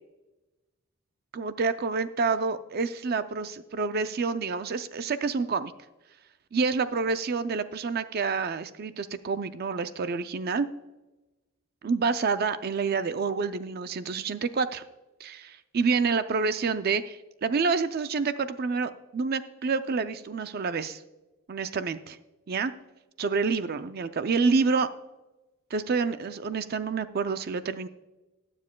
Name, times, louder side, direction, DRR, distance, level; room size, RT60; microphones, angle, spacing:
voice 1, 1.3-5.7 6.5-10.7 11.8-14.8 15.2-21.0 21.5-22.2 22.5-22.7 23.2-24.9 25.7-27.9, right 4 dB, 45° right, 11 dB, 0.4 m, -28 dB
20.5 x 7.4 x 2.2 m, 1.1 s
head